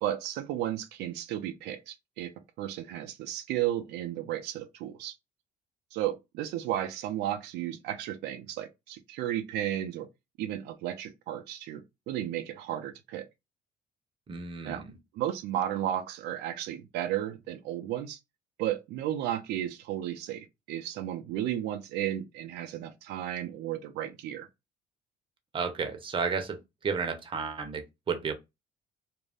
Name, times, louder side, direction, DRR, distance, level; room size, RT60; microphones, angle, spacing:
voice 1, 0.0-5.2 5.9-10.1 10.4-13.2 14.6-14.8 15.1-18.2 18.6-24.5, right 12 dB, 80° right, 0.4 m, -33 dB
voice 2, 14.3-14.9 25.5-28.3, right 5 dB, 30° right, 0.7 m, -32 dB
2.5 x 2.1 x 3.3 m
cardioid pair, 110°, 17 cm